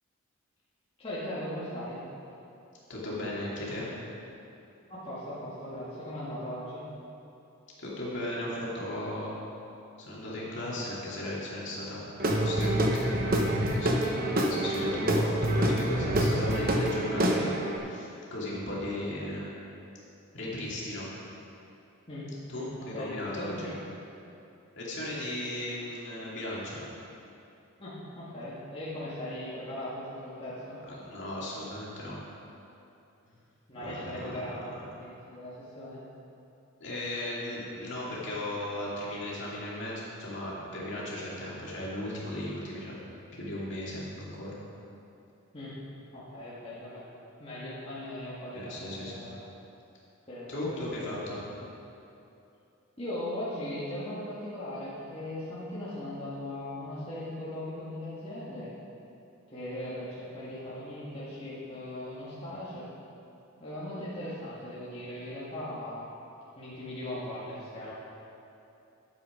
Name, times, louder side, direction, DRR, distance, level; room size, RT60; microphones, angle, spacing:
voice 1, 1.0-2.0 4.9-6.8 22.1-23.8 27.8-30.8 33.2-33.4 33.7-36.0 45.5-45.8 46.1-47.0 47.4-49.4 50.3-51.4 51.7-51.8 53.0-58.7 59.5-62.9 63.6-66.1 66.6-67.9, left 1 dB, 25° left, -10 dB, 1.9 m, -39 dB
voice 2, 2.9-3.9 7.8-9.3 10.1-19.5 20.3-21.1 22.5-23.7 24.8-26.8 30.9-32.2 33.8-34.4 36.8-43.0 43.3-44.6 48.5-49.2 50.5-51.4, left 1 dB, 55° left, -6 dB, 2.7 m, -36 dB
Guitar / Drum, 12.2-17.8, right 1 dB, 40° right, 1.0 m, -27 dB
12.0 x 8.3 x 5.1 m, 2.8 s
head